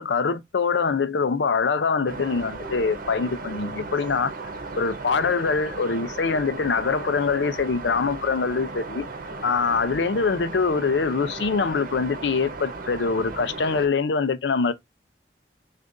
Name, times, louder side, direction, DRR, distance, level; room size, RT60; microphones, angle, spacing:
voice 1, 0.0-4.3 4.8-9.0 9.4-14.7, left 5 dB, 80° left, 0.5 m, -24 dB
sound 1, 2.1-13.9, right 3 dB, 55° right, 0.9 m, -36 dB
6.3 x 2.5 x 2.5 m
head